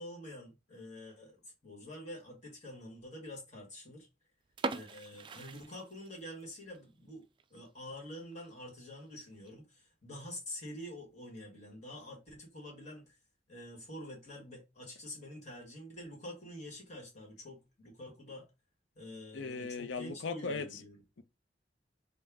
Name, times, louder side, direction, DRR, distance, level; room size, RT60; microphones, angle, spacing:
voice 1, 0.0-4.1 4.7-7.2 7.5-13.2 13.5-18.5 18.9-21.0, left 1 dB, 40° left, 1.5 m, -47 dB
sound 1, 4.5-6.4 6.7-6.8 7.4-7.6 8.0-8.1 8.3-8.4 9.2-9.5, right 3 dB, 25° right, 0.3 m, -40 dB
voice 2, 19.3-20.8 21.2-21.3, left 4 dB, 90° left, 0.6 m, -38 dB
5.4 x 2.2 x 3.4 m
head